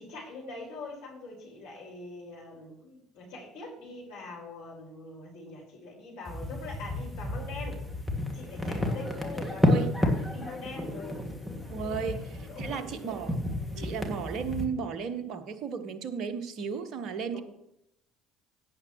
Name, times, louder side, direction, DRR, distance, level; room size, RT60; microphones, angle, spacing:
voice 1, 0.0-7.8 8.3-11.3 12.0-12.2 12.5-13.3 13.7-14.0 17.3-17.4, left 3 dB, 65° left, -3 dB, 5.2 m, -43 dB
sound 1, 6.3-14.6, left 1 dB, 5° right, 2.4 m, -31 dB
voice 2, 11.7-13.4 13.8-17.4, right 6 dB, 50° right, 10 dB, 1.2 m, -34 dB
17.5 x 8.8 x 3.2 m, 0.77 s
figure-of-eight pair, 55°, 0 cm